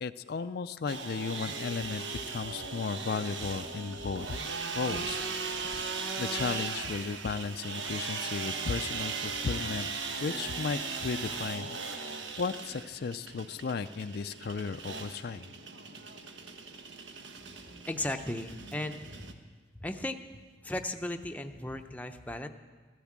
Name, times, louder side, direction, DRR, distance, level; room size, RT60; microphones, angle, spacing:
voice 1, 0.0-5.2 5.7-9.9 10.2-15.5, left 5 dB, 55° left, 11 dB, 0.4 m, -35 dB
sound 1, 0.9-19.3, right 4 dB, 85° right, 1.2 m, -38 dB
voice 2, 17.9-19.4 19.8-20.2 20.6-22.5, left 1 dB, 10° left, 6 dB, 0.6 m, -36 dB
15.5 x 13.0 x 7.4 m, 1.4 s
head